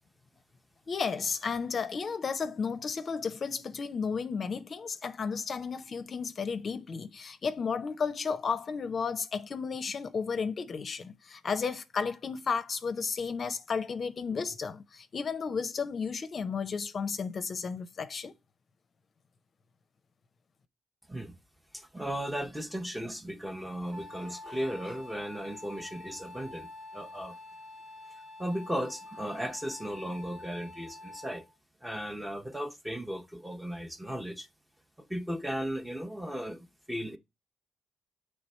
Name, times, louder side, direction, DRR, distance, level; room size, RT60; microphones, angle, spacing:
voice 1, 0.9-18.3, left 5 dB, 45° left, 0.5 m, -33 dB
voice 2, 21.7-27.4 28.4-31.4 31.8-34.5 35.0-37.2, equal, 5° right, 0.7 m, -36 dB
Wind instrument woodwind instrument, 23.9-31.5, left 2 dB, 60° right, 1.5 m, -47 dB
7.7 x 3.3 x 4.3 m
cardioid pair, 90°, 0 cm